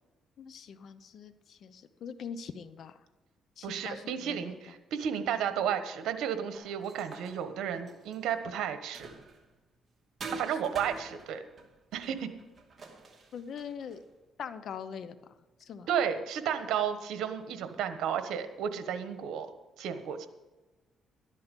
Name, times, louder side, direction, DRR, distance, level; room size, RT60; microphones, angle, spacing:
voice 1, 0.4-3.0 3.6-4.7 10.5-10.6 13.3-14.0 14.4-15.2 15.6-15.9, left 7 dB, 65° left, 11 dB, 0.8 m, -43 dB
voice 2, 3.6-9.1 10.3-11.4 11.9-12.3 15.9-19.5 19.8-20.3, right 8 dB, 85° right, 9 dB, 1.2 m, -33 dB
sound 1, 6.5-9.6 10.2-14.1, right 3 dB, 35° right, 2.7 m, -47 dB
13.0 x 11.0 x 5.4 m, 1.2 s
cardioid pair, 90°, 0 cm